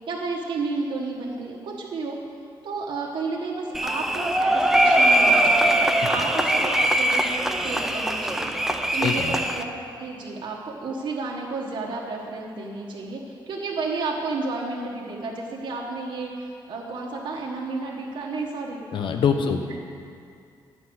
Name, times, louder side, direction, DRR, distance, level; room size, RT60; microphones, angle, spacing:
voice 1, 0.1-2.2 2.6-5.7 6.1-7.3 7.6-8.5 8.9-9.7 10.0-18.8 19.4-19.5, right 3 dB, 70° right, -3 dB, 1.3 m, -31 dB
sound 1, 3.7-9.6, right 1 dB, 5° right, 0.4 m, -21 dB
voice 2, 8.9-9.3 18.9-19.8, left 6 dB, 75° left, 6 dB, 0.8 m, -25 dB
11.0 x 5.7 x 8.0 m, 2.3 s
wide cardioid pair, 160°, 9 cm